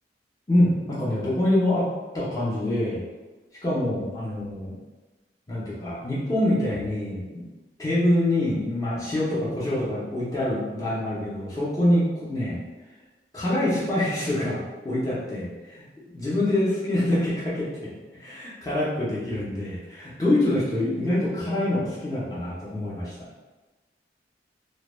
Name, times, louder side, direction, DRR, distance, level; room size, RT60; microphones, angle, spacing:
voice 1, 0.5-1.9 2.1-3.1 3.6-4.7 5.5-7.4 7.8-12.6 13.3-15.8 16.1-23.1, left 1 dB, 20° left, -9 dB, 0.5 m, -25 dB
2.1 x 2.1 x 3.0 m, 1.2 s
head